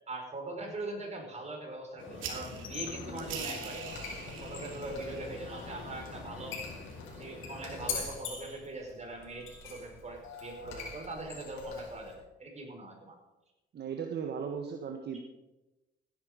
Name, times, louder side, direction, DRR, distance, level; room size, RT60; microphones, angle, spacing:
voice 1, 0.0-6.6 7.1-13.2, right 2 dB, 35° right, 1 dB, 5.1 m, -42 dB
sound 1, 2.0-8.1, left 4 dB, 75° left, 5.0 m, -46 dB
sound 2, 2.1-8.3, right 6 dB, 85° right, 2.9 m, -46 dB
Squeak, 2.5-12.1, left 5 dB, 90° left, 4.8 m, -43 dB
voice 2, 13.7-15.2, right 7 dB, 55° right, 4 dB, 1.5 m, -36 dB
16.0 x 10.5 x 5.2 m, 1.0 s
cardioid pair, 90°, 20 cm